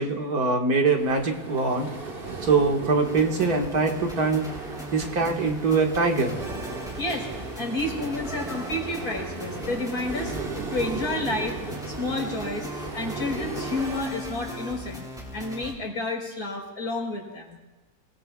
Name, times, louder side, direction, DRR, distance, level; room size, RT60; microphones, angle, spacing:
voice 1, 0.0-1.9 2.4-4.5 4.9-6.4, right 4 dB, 80° right, 1 dB, 2.3 m, -23 dB
sound 1, 1.0-14.0, right 3 dB, 40° right, 1.8 m, -37 dB
sound 2, 3.0-15.7, equal, ahead, 3.4 m, -38 dB
voice 2, 7.0-10.3 10.7-11.6 11.9-15.0 15.3-17.6, left 2 dB, 85° left, -1 dB, 4.9 m, -30 dB
28.5 x 20.0 x 2.4 m, 1.1 s
omnidirectional pair, 1.6 m